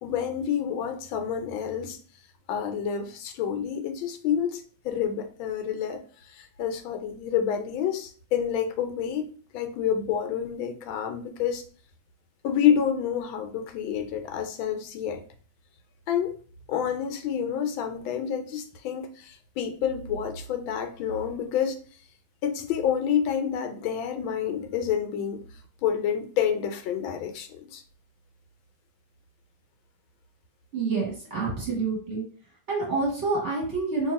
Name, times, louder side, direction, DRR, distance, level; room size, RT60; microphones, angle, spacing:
voice 1, 0.0-2.0 2.5-11.6 12.4-15.2 16.1-16.4 16.7-21.8 22.4-25.4 25.8-27.8, left 8 dB, 85° left, 1.4 m, -28 dB
voice 2, 30.7-32.2 32.7-34.1, right 3 dB, 45° right, 1.1 m, -27 dB
2.9 x 2.7 x 4.1 m
omnidirectional pair, 2.1 m